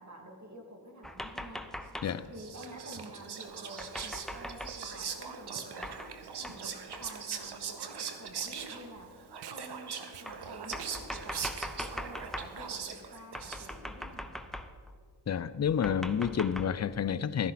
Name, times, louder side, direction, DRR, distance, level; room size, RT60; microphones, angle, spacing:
voice 1, 0.0-1.7 2.3-6.7 7.0-9.2 9.5-11.5 11.8-14.4, right 1 dB, 40° right, 2.5 m, -49 dB
sound 1, 1.0-2.2 3.8-4.8 5.8-6.2 6.4-6.6 6.9-7.1 7.9-8.0 9.0-9.1 10.3-12.6 13.3-14.9 15.7-16.7, equal, ahead, 0.8 m, -41 dB
Whispering, 2.0-14.0, right 6 dB, 65° right, 1.0 m, -41 dB
Packing tape duct tape, 6.3-13.3, right 11 dB, 85° right, 0.6 m, -52 dB
voice 2, 15.3-17.5, left 8 dB, 40° left, 0.5 m, -29 dB
14.0 x 10.5 x 4.2 m
cardioid pair, 40°, 42 cm